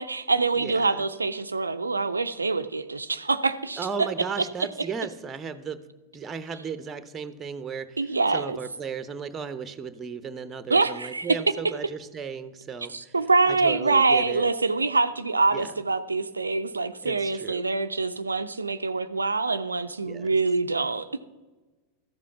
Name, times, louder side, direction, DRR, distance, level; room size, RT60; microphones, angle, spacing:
voice 1, 0.0-4.1 8.0-8.6 10.7-11.4 12.9-21.2, right 3 dB, 80° right, 9 dB, 0.4 m, -25 dB
voice 2, 0.5-1.0 3.8-5.8 6.1-13.2 13.5-14.5 15.5-15.7 17.0-17.6 20.0-20.3, right 6 dB, 20° right, 12 dB, 0.8 m, -35 dB
13.5 x 7.3 x 5.6 m, 1.2 s
figure-of-eight pair, 90°, 0 cm